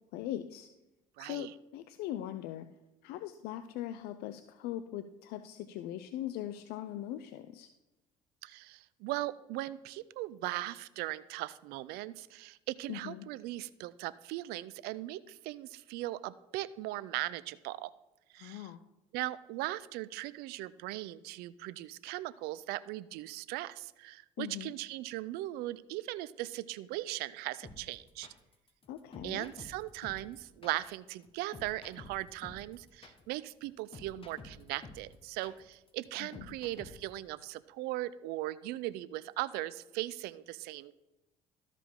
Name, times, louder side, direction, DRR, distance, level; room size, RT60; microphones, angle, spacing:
voice 1, 0.1-0.7 1.2-2.7 3.0-7.7 12.9-13.3 18.4-18.8 24.4-24.7 28.9-29.5 36.2-36.5, left 12 dB, 75° left, 11 dB, 0.4 m, -40 dB
voice 2, 1.2-1.5 8.4-17.9 18.3-18.7 19.1-28.3 29.2-40.9, right 16 dB, 75° right, 18 dB, 0.4 m, -39 dB
sound 1, 27.6-37.2, left 3 dB, 35° left, 1.4 m, -50 dB
13.0 x 4.9 x 3.7 m, 0.98 s
hypercardioid pair, 65°, 17 cm